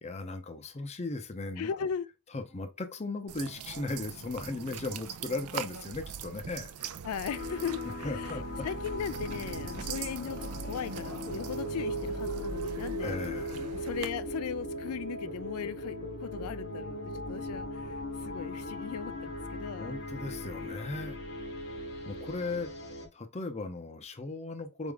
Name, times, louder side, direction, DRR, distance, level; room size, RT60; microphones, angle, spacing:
voice 1, 0.0-1.7 2.3-6.7 8.0-8.7 13.0-13.8 19.8-21.2 22.1-22.7 23.1-24.9, left 3 dB, 30° left, 0.6 m, -37 dB
voice 2, 1.6-2.1 7.0-13.2 13.7-19.9, left 7 dB, 75° left, 0.3 m, -38 dB
sound 1, 3.3-14.1, right 7 dB, 85° right, 0.5 m, -42 dB
sound 2, 7.3-23.1, equal, 50° left, 1.0 m, -38 dB
4.3 x 3.6 x 3.5 m
head